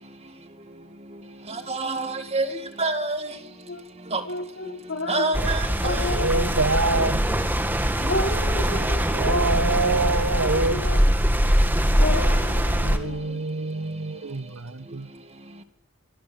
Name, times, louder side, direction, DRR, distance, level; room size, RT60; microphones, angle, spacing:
voice 1, 0.0-6.6 7.6-8.1 8.7-9.3 11.2-12.0 12.7-15.6, right 2 dB, 30° right, 2.2 m, -33 dB
voice 2, 4.3-5.4 5.8-6.6 8.1-9.5 10.5-11.6 12.0-13.4, left 2 dB, 60° left, 3.2 m, -31 dB
sound 1, 5.3-13.0, equal, 10° right, 2.1 m, -22 dB
voice 3, 6.1-7.2 9.1-10.8 12.7-15.1, right 3 dB, 75° right, 1.0 m, -26 dB
25.0 x 25.0 x 6.4 m
head